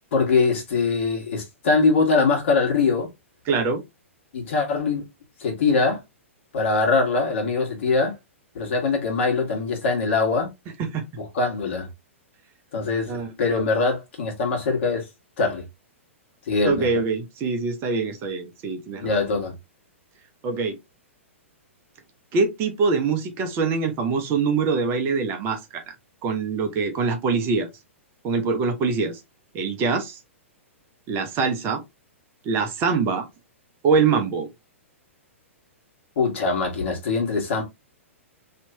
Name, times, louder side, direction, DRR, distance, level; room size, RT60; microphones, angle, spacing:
voice 1, 0.1-3.1 4.3-5.0 5.4-6.0 6.5-8.1 8.5-10.5 11.1-11.9 12.7-15.1 15.4-15.6 16.5-17.0 19.0-19.5 36.2-37.6, left 4 dB, 60° left, 1.8 m, -22 dB
voice 2, 3.5-3.8 10.8-11.1 13.1-13.3 16.6-19.1 20.4-20.8 22.3-25.8 26.2-27.7 28.2-29.2 29.5-30.2 31.1-31.8 32.4-33.3 33.8-34.5, right 4 dB, 30° right, 0.8 m, -24 dB
3.3 x 2.9 x 2.8 m
figure-of-eight pair, 110°, 7 cm